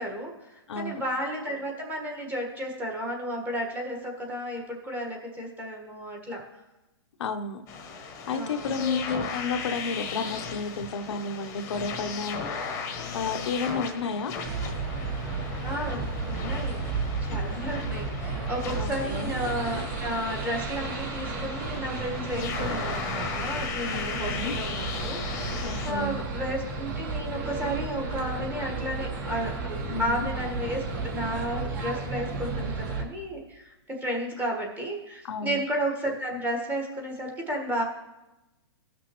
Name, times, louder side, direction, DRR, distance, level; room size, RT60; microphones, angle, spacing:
voice 1, 0.0-6.4 8.3-9.1 15.6-29.5 30.0-37.8, equal, 10° right, -1 dB, 1.5 m, -33 dB
voice 2, 0.7-1.0 7.2-7.6 8.3-12.4 13.0-14.3 18.7-19.3 23.9-24.6 25.6-26.2 29.9-30.3 35.2-35.6, left 4 dB, 75° left, 6 dB, 0.8 m, -31 dB
sound 1, 7.7-25.9, left 5 dB, 20° left, 1.1 m, -37 dB
sound 2, 14.4-33.0, right 3 dB, 45° right, 1.4 m, -33 dB
18.0 x 6.1 x 3.1 m, 1.0 s
hypercardioid pair, 155°, 15 cm